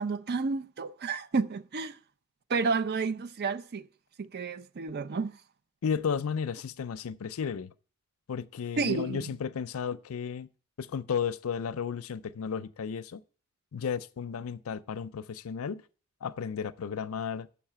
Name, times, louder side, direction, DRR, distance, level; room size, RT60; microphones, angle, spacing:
voice 1, 0.0-2.0 2.5-3.9 4.2-5.4 8.8-9.2, right 4 dB, 50° right, 0.5 m, -31 dB
voice 2, 5.8-7.7 8.3-10.5 10.8-13.2 13.7-15.8 16.2-17.5, left 6 dB, 75° left, 0.5 m, -33 dB
7.1 x 5.7 x 7.3 m
head